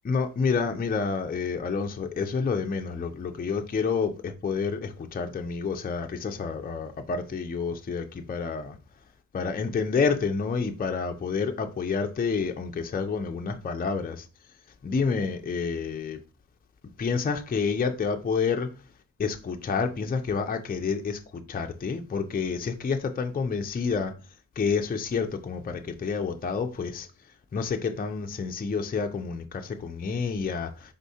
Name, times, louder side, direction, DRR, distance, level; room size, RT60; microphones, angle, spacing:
voice 1, 0.0-8.7 9.3-14.2 14.8-16.2 17.0-18.7 19.2-24.1 24.6-27.1 27.5-29.4 29.8-30.7, left 5 dB, 25° left, 0.4 m, -29 dB
4.6 x 3.6 x 2.7 m
wide cardioid pair, 95°, 34 cm